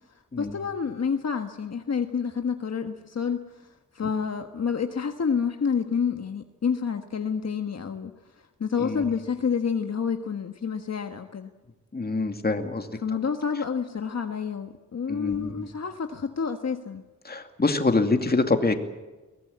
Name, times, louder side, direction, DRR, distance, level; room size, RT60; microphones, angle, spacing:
voice 1, 0.1-8.1 8.6-11.5 13.0-17.0, left 6 dB, 55° left, 6 dB, 1.4 m, -29 dB
voice 2, 8.8-9.1 11.9-12.9 15.1-15.7 17.2-18.7, left 3 dB, 30° left, 6 dB, 2.5 m, -25 dB
23.0 x 19.5 x 8.6 m, 1.1 s
wide cardioid pair, 100°, 31 cm